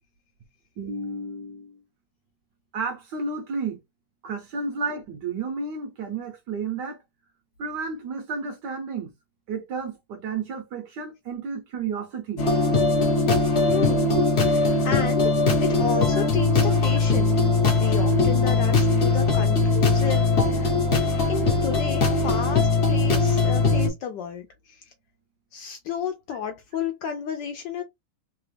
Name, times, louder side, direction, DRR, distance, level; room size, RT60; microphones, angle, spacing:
voice 1, 0.8-1.8 2.7-3.8 4.2-7.0 7.6-9.1 9.5-12.4 14.1-14.2 16.1-16.3, right 4 dB, 65° right, 1.2 m, -32 dB
sound 1, 12.4-23.9, left 3 dB, 50° left, 0.7 m, -21 dB
voice 2, 13.7-14.0 14.8-15.3 15.6-17.4 17.8-20.7 21.3-24.8 25.5-27.8, left 7 dB, 75° left, 1.0 m, -32 dB
3.4 x 2.4 x 3.2 m
omnidirectional pair, 2.3 m